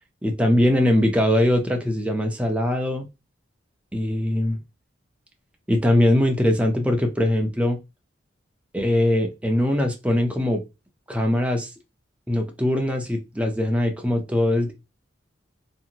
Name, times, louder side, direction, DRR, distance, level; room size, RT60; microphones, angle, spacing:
voice 1, 0.2-3.1 3.9-4.6 5.7-7.8 8.7-10.6 11.1-11.7 12.3-14.7, left 1 dB, 5° right, 3 dB, 0.5 m, -21 dB
2.7 x 2.5 x 2.7 m, 0.25 s
head